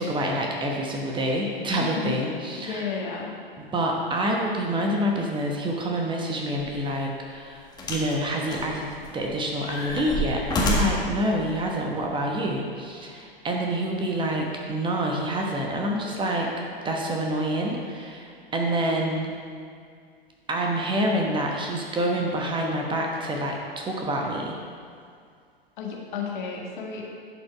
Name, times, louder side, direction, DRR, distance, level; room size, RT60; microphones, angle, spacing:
voice 1, 0.0-2.9 3.7-16.5 16.8-19.3 20.5-24.6, right 1 dB, 15° right, 0 dB, 1.0 m, -27 dB
voice 2, 1.7-2.2 2.6-3.4 25.8-27.1, left 5 dB, 55° left, -1 dB, 1.7 m, -32 dB
sound 1, 6.6-6.8 7.8-8.1 8.5-9.2 9.6-11.1 12.0-12.1, left 1 dB, 15° left, 1.5 m, -27 dB
11.0 x 5.2 x 4.7 m, 2.2 s
figure-of-eight pair, 100°, 29 cm